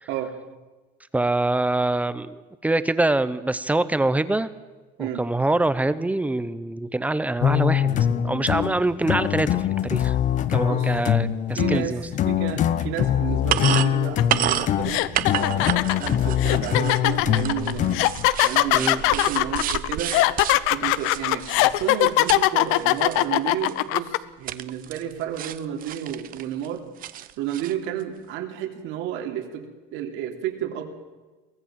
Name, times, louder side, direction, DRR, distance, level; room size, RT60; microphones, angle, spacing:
voice 1, 1.1-4.5 5.0-10.1 10.5-12.0 18.7-19.0, right 2 dB, 5° right, 14 dB, 0.7 m, -24 dB
sound 1, 7.4-18.3, left 10 dB, 35° left, 0.9 m, -24 dB
voice 2, 10.7-11.0 11.5-11.9 12.3-15.1 15.4-18.1 18.4-20.1 20.7-26.8 27.4-29.7 29.9-30.9, right 10 dB, 70° right, 5 dB, 3.2 m, -31 dB
sound 2, 13.3-22.4 22.7-23.2 23.7-23.8 24.5-25.1 25.4-26.7 27.0-27.7, right 12 dB, 40° right, 0.9 m, -30 dB
sound 3, 14.2-14.3 14.8-24.2, left 17 dB, 75° left, 0.9 m, -21 dB
23.0 x 18.0 x 7.5 m, 1.2 s
cardioid pair, 170°, 21 cm